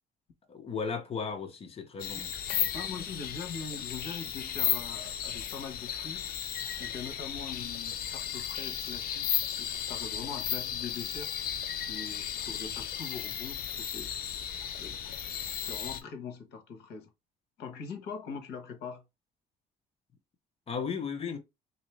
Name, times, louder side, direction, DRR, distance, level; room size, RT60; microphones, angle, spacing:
voice 1, 0.5-2.7 20.7-21.4, left 5 dB, 35° left, 1.0 m, -36 dB
sound 1, 2.0-16.0, left 9 dB, 60° left, 0.7 m, -35 dB
voice 2, 2.7-6.2 6.8-11.5 11.9-14.1 14.8-15.2 15.6-17.1 17.6-19.0, left 5 dB, 80° left, 1.1 m, -42 dB
3.6 x 2.8 x 3.1 m
cardioid pair, 110°, 17 cm